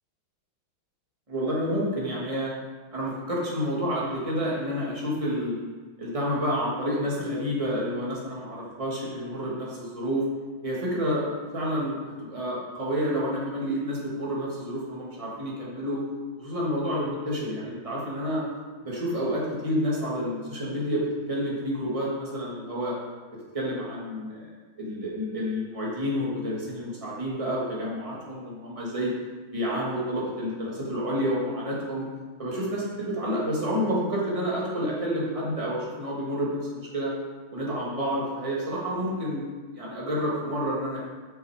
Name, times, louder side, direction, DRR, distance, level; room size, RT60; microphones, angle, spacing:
voice 1, 1.3-2.5 2.9-5.6 6.0-10.2 10.6-11.3 11.5-16.0 16.4-18.4 18.8-22.9 23.5-24.5 24.8-29.1 29.5-32.1 32.4-37.1 37.5-39.4 39.7-41.0, equal, 15° right, -6 dB, 1.8 m, -29 dB
6.5 x 6.4 x 4.9 m, 1.4 s
omnidirectional pair, 2.2 m